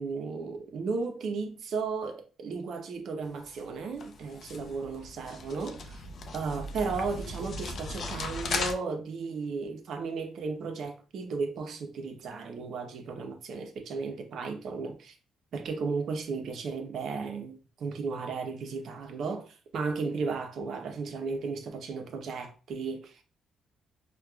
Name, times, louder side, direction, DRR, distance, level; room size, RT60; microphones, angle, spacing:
voice 1, 0.0-6.0 6.3-15.1 15.5-23.2, right 4 dB, 65° right, 0.6 m, -35 dB
sound 1, 3.3-8.7, left 3 dB, 55° left, 0.5 m, -37 dB
4.5 x 2.2 x 2.3 m
cardioid pair, 90°, 0 cm